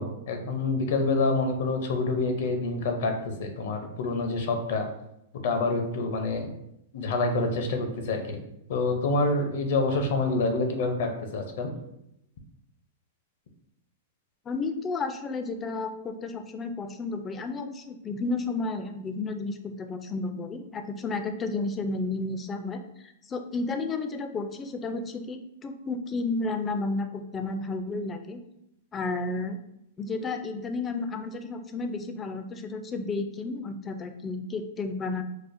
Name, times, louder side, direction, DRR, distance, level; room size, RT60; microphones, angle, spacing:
voice 1, 0.0-3.1 3.4-4.9 5.4-6.5 6.9-8.4 8.7-11.7, left 3 dB, 65° left, 5 dB, 0.6 m, -27 dB
voice 2, 14.5-28.4 28.9-29.6 30.0-35.2, left 3 dB, 20° left, 7 dB, 0.3 m, -32 dB
4.8 x 2.1 x 2.5 m, 0.81 s
hypercardioid pair, 130°, 0 cm